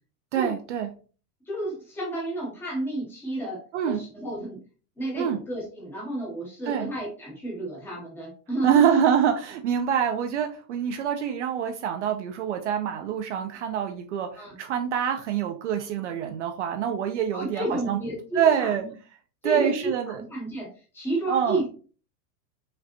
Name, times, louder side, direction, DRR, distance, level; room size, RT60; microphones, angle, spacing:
voice 1, 0.3-0.9 3.7-4.0 5.2-5.4 6.7-6.9 8.6-18.0 18.3-18.9 19.4-20.2 21.3-21.6, right 8 dB, 45° right, 6 dB, 0.5 m, -25 dB
voice 2, 1.5-4.6 5.0-9.0 14.4-14.5 17.3-18.9 19.4-20.7 20.9-21.8, right 1 dB, 5° left, -3 dB, 0.6 m, -31 dB
5.0 x 3.3 x 2.8 m, 0.38 s
supercardioid pair, 180°, 50 cm